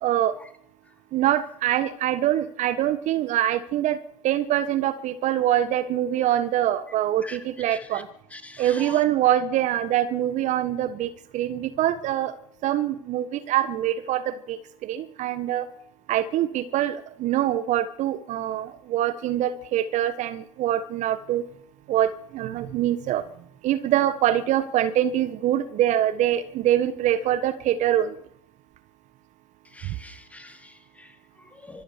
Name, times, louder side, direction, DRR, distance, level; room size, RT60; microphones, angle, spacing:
voice 1, 0.0-0.4 1.1-8.1 8.6-12.4 12.6-15.7 16.1-21.4 21.9-23.2 23.6-28.2 29.8-30.0, right 12 dB, 40° right, 13 dB, 1.3 m, -24 dB
voice 2, 7.2-8.0 8.3-9.0 29.6-31.8, left 2 dB, 5° left, 10 dB, 2.2 m, -44 dB
24.5 x 8.6 x 6.6 m, 0.70 s
hypercardioid pair, 90°, 18 cm